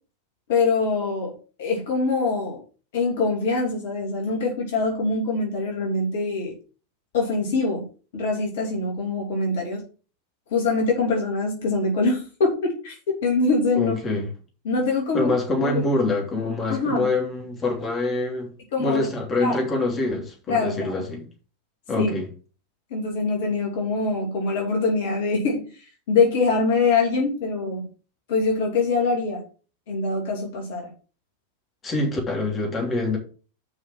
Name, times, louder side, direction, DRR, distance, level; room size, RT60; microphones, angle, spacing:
voice 1, 0.5-2.6 2.9-6.5 7.1-7.9 8.1-9.8 10.5-12.9 13.2-14.0 14.6-15.3 15.6-15.8 16.7-17.1 18.7-19.1 19.4-19.6 20.5-21.0 22.0-22.1 22.9-25.7 26.1-27.9 28.3-29.4 29.9-30.9, left 3 dB, 55° left, 2.9 m, -24 dB
voice 2, 13.7-14.3 15.1-18.5 18.8-21.3 21.9-22.3 31.8-33.2, left 2 dB, 20° left, 3.1 m, -25 dB
6.8 x 5.6 x 6.1 m
figure-of-eight pair, 90°, 0 cm